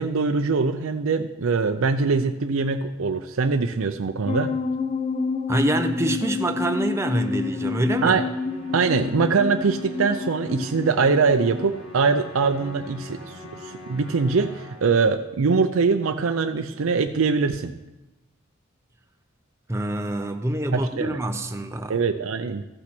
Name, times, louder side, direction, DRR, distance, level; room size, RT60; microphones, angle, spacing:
voice 1, 0.0-4.5 8.0-8.2 8.7-13.4 13.6-17.7 20.7-21.2 21.9-22.6, right 4 dB, 80° right, 7 dB, 0.5 m, -22 dB
sound 1, 4.3-11.7, left 4 dB, 30° left, 0.6 m, -29 dB
voice 2, 5.5-8.2 19.7-22.0, right 1 dB, 15° right, 5 dB, 0.5 m, -26 dB
Musical instrument, 6.6-15.1, left 1 dB, 85° left, 2.0 m, -41 dB
14.5 x 6.0 x 5.9 m, 0.99 s
head